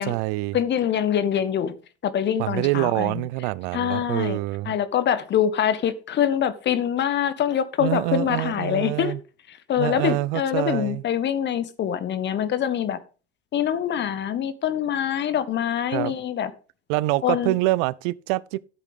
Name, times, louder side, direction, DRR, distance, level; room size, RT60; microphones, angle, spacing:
voice 1, 0.0-0.6 2.4-4.7 7.8-9.2 9.8-11.0 15.9-16.2 16.9-18.6, right 19 dB, 50° right, 0.6 m, -25 dB
voice 2, 0.5-1.7 2.0-3.2 3.7-4.4 4.6-9.1 9.5-13.0 13.5-16.5 17.2-17.6, left 9 dB, 35° left, 1.4 m, -24 dB
13.5 x 8.2 x 3.7 m
hypercardioid pair, 85°, 33 cm